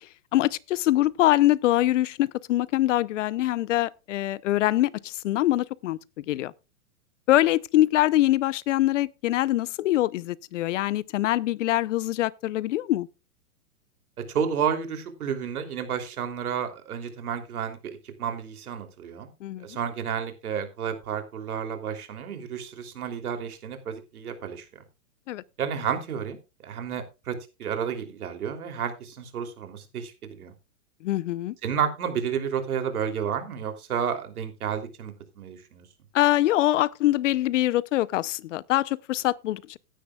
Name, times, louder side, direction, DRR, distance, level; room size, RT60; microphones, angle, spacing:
voice 1, 0.3-6.5 7.3-13.1 19.4-19.7 25.3-25.4 31.0-31.5 36.1-39.8, left 15 dB, 55° left, 0.8 m, -24 dB
voice 2, 14.3-19.3 19.6-24.7 25.6-26.4 26.6-30.5 31.6-35.9, right 7 dB, 75° right, 3.2 m, -31 dB
16.5 x 10.0 x 2.3 m
hypercardioid pair, 140°, 44 cm